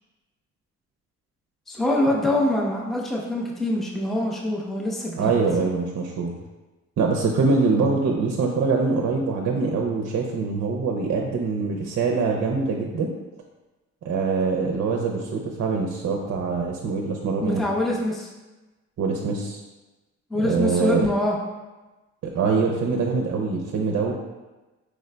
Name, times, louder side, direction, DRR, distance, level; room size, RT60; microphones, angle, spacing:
voice 1, 1.7-5.3 17.4-18.3 20.3-21.4, left 1 dB, ahead, -2 dB, 0.6 m, -24 dB
voice 2, 5.2-6.3 7.0-13.1 14.0-17.6 19.0-19.6 20.4-21.1 22.2-24.1, right 4 dB, 55° right, 0 dB, 0.6 m, -24 dB
4.7 x 3.7 x 2.2 m, 1.1 s
cardioid pair, 90°, 30 cm